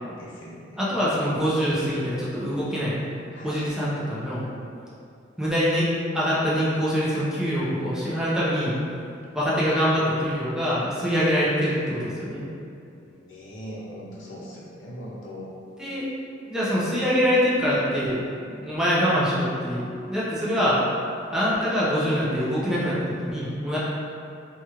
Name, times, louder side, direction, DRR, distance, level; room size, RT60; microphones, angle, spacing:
voice 1, 0.2-1.3 3.3-3.7 13.0-15.5, equal, 85° left, -5 dB, 0.6 m, -41 dB
voice 2, 0.8-3.0 3.4-4.5 5.4-5.9 6.1-8.8 9.3-12.4 15.8-16.1 16.4-20.8 21.3-23.8, equal, 5° right, -9 dB, 0.5 m, -24 dB
3.1 x 2.3 x 2.8 m, 2.5 s
head